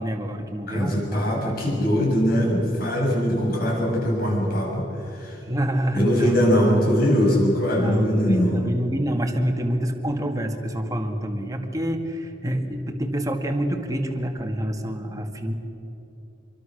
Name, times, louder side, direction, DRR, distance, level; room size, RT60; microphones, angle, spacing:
voice 1, 0.0-1.7 5.4-6.4 7.8-15.5, equal, 20° right, 3 dB, 2.0 m, -27 dB
voice 2, 0.7-5.4 5.9-8.6, equal, 55° left, -2 dB, 7.6 m, -22 dB
26.5 x 23.5 x 6.6 m, 3.0 s
head